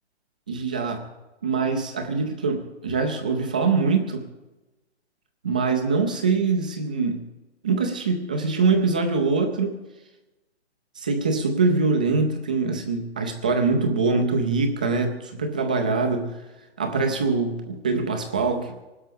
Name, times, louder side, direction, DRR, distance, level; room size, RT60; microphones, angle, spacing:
voice 1, 0.5-1.0 1.4-4.2 5.4-7.2 7.6-9.8 11.0-16.4 16.8-18.7, right 4 dB, 10° right, 4 dB, 0.4 m, -23 dB
25.5 x 12.0 x 3.4 m, 1.1 s
figure-of-eight pair, 135°, 34 cm